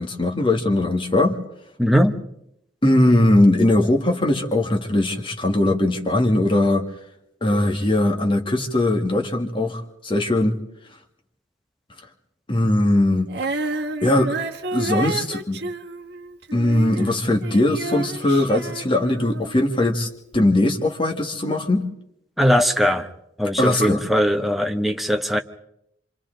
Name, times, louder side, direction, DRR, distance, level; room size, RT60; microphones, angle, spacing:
voice 1, 0.0-1.4 2.8-6.8 7.4-10.6 12.5-13.3 14.0-14.4 14.7-15.6 16.5-21.9 23.6-24.0, left 1 dB, 30° left, 2 dB, 1.8 m, -20 dB
voice 2, 1.8-2.1 22.4-23.1 23.4-25.4, equal, ahead, 4 dB, 1.0 m, -19 dB
Female singing, 13.3-19.6 20.3-20.4, right 3 dB, 60° right, 1.2 m, -30 dB
26.5 x 26.5 x 3.9 m, 0.78 s
head